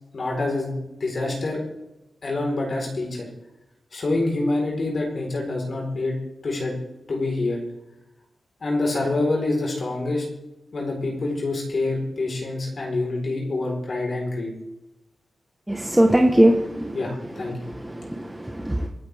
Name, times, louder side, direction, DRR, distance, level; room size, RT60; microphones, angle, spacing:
voice 1, 0.1-1.6 2.2-3.3 3.9-6.2 6.4-6.7 7.1-7.6 8.6-10.2 10.7-14.5 16.9-17.7, left 2 dB, 50° left, -1 dB, 4.5 m, -26 dB
voice 2, 15.7-17.0 17.7-18.9, right 1 dB, 10° right, 1 dB, 1.4 m, -20 dB
25.0 x 9.3 x 3.6 m, 0.91 s
wide cardioid pair, 120°, 0 cm